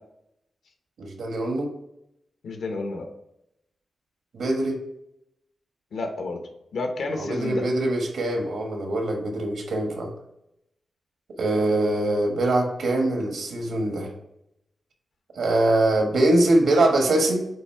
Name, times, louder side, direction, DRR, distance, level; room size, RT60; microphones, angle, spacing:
voice 1, 1.0-1.7 4.3-4.8 7.2-10.1 11.4-14.1 15.3-17.5, right 1 dB, 85° right, 2 dB, 1.3 m, -23 dB
voice 2, 2.4-3.1 5.9-6.4 6.7-7.7, left 3 dB, 90° left, 4 dB, 1.1 m, -30 dB
8.0 x 2.8 x 4.4 m, 0.82 s
wide cardioid pair, 115°, 0 cm